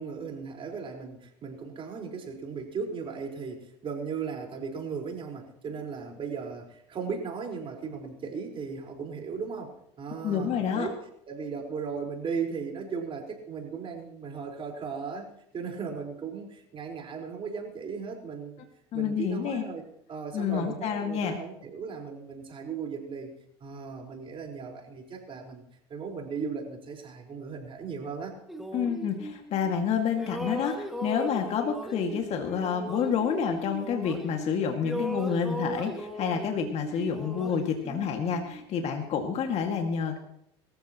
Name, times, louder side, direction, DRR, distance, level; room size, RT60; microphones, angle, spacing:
voice 1, 0.0-11.0 11.3-18.6 18.9-23.3 23.6-25.6 25.9-28.4, right 5 dB, 40° right, 1 dB, 4.7 m, -37 dB
voice 2, 10.2-10.9 18.9-19.6 20.3-21.4 28.7-40.2, left 7 dB, 50° left, 3 dB, 2.2 m, -29 dB
sound 1, 28.5-29.8 30.1-34.5 34.8-38.6, equal, ahead, 2.3 m, -38 dB
23.0 x 14.5 x 3.1 m, 0.76 s
supercardioid pair, 95°, 14 cm